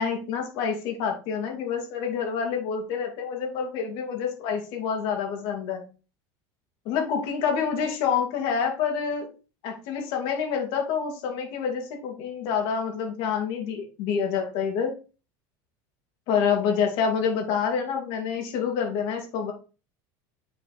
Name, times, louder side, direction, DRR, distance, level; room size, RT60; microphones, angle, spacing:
voice 1, 0.0-5.8 6.9-9.3 9.6-14.9 16.3-19.5, left 6 dB, 55° left, 2 dB, 2.7 m, -27 dB
7.7 x 4.6 x 4.4 m, 0.33 s
cardioid pair, 160°, 10 cm